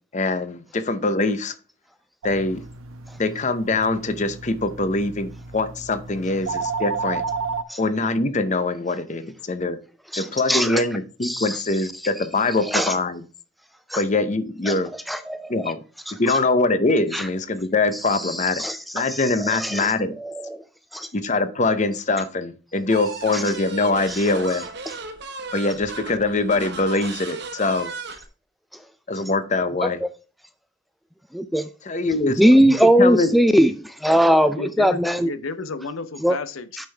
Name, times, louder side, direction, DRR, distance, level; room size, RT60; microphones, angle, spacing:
voice 1, 0.1-1.5 2.2-2.6 3.2-7.2 7.8-9.8 10.2-13.2 14.0-14.9 15.5-15.8 16.2-18.6 18.9-20.1 21.1-24.6 25.5-27.9 29.1-30.0 31.8-32.7 33.0-33.3, left 3 dB, 35° left, 0.7 m, -23 dB
sound 1, 2.2-7.6, right 4 dB, 85° right, 0.8 m, -32 dB
voice 2, 10.1-10.8 11.2-11.6 12.7-12.9 13.9-14.0 14.7-14.8 15.1-15.7 17.1-17.3 18.1-19.9 20.2-20.6 20.9-21.1 23.3-23.4 24.1-24.2 29.8-30.1 31.3-31.7 32.4-35.3 36.2-36.4, equal, ahead, 0.3 m, -20 dB
sound 2, 22.9-28.3, right 4 dB, 55° right, 1.2 m, -35 dB
voice 3, 34.3-36.9, left 3 dB, 80° left, 0.7 m, -32 dB
9.1 x 5.5 x 3.4 m
head